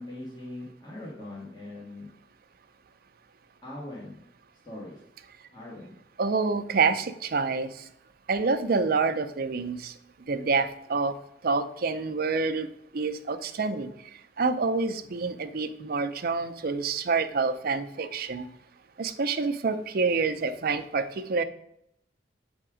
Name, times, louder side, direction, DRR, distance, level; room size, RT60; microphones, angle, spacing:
voice 1, 0.0-2.1 3.6-4.2 4.6-5.0 5.5-5.9, left 1 dB, 25° left, -7 dB, 1.6 m, -41 dB
voice 2, 6.2-7.7 8.3-9.9 10.3-11.1 11.4-12.7 12.9-13.9 14.4-18.5 19.0-21.4, right 4 dB, 55° right, 9 dB, 0.5 m, -27 dB
7.7 x 3.6 x 4.9 m, 0.75 s
head